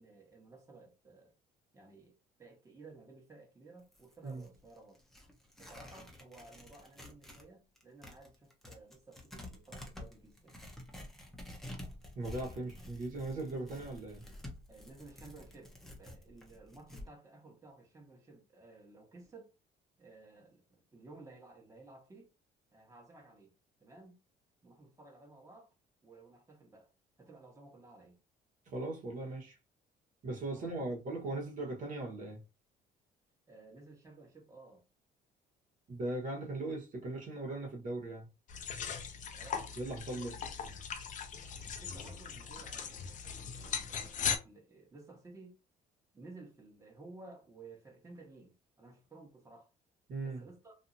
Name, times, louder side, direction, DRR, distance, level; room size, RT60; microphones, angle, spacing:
voice 1, 0.0-1.4 1.7-5.0 5.6-10.6 14.7-19.5 20.0-22.3 22.7-23.5 23.8-24.1 24.6-25.7 26.0-26.9 27.2-28.2 30.5-30.9 33.5-34.8 39.3-39.7 40.1-40.3 41.6-45.6 46.1-49.7 50.2-50.7, right 3 dB, 20° right, 1.2 m, -55 dB
Tearing, 3.8-7.5 7.8-17.1, left 1 dB, ahead, 0.8 m, -50 dB
voice 2, 12.1-14.2 28.7-29.5 30.2-32.4 35.9-38.3 39.8-40.4 50.1-50.4, right 2 dB, 50° right, 1.3 m, -39 dB
sound 1, 38.5-44.4, left 7 dB, 50° left, 0.5 m, -39 dB
2.7 x 2.7 x 2.6 m
cardioid pair, 110°, 17 cm